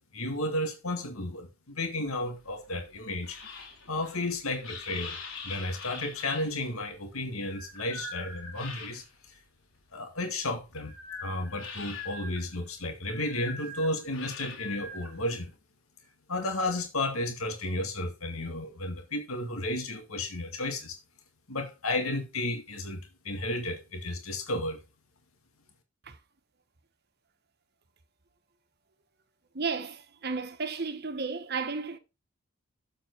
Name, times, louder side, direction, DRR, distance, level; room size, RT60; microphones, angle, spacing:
voice 1, 0.0-3.4 3.9-5.2 5.4-9.4 9.9-10.9 11.2-15.5 16.3-21.0 21.5-23.0 23.2-24.8, left 2 dB, 80° left, 2.0 m, -33 dB
sound 1, 2.1-9.3 9.7-15.5, left 4 dB, 65° left, 3.0 m, -43 dB
voice 2, 29.5-32.0, right 4 dB, 50° right, 1.2 m, -33 dB
7.6 x 7.5 x 4.6 m
head